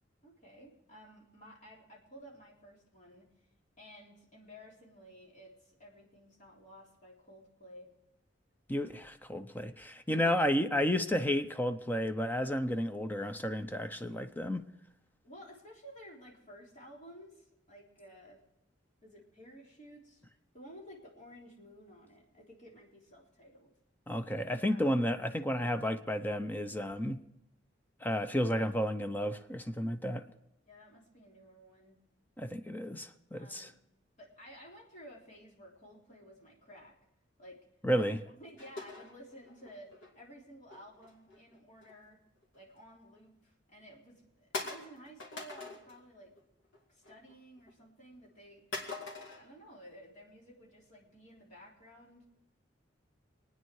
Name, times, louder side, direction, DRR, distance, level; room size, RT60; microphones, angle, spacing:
voice 1, 0.2-3.3 3.8-7.9 10.1-10.5 15.2-18.4 19.0-20.2 20.5-23.7 24.6-24.8 30.7-32.0 33.3-33.8 34.2-37.0 37.4-37.6 37.9-42.2 42.5-46.3 46.9-48.8 49.3-52.2, equal, 40° left, 3.6 m, -54 dB
voice 2, 8.7-14.7 24.1-27.2 28.0-30.2 32.4-33.7 37.8-38.2, equal, 10° left, 0.6 m, -32 dB
sound 1, 38.6-40.1 40.7-42.0 42.4-42.6 43.1-43.2 43.8-43.9 44.5-46.0 46.4-46.8 47.0-47.7 48.7-49.4, left 3 dB, 90° left, 2.4 m, -43 dB
24.5 x 9.5 x 4.7 m
head